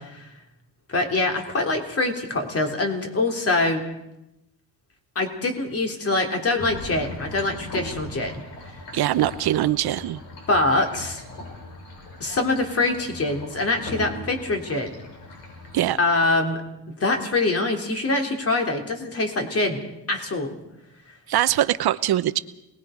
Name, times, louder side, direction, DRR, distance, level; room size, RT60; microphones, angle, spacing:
voice 1, 0.9-3.8 5.2-8.4 10.5-11.2 12.2-15.0 16.0-16.6 17.0-19.8 20.1-20.6, left 2 dB, 35° left, 3 dB, 3.5 m, -24 dB
sound 1, 6.6-15.8, left 2 dB, 70° left, 7.5 m, -39 dB
voice 2, 8.9-10.2 15.7-16.0 21.3-22.4, right 13 dB, 60° right, 13 dB, 0.9 m, -22 dB
27.0 x 20.0 x 5.2 m, 0.91 s
cardioid pair, 115°, 42 cm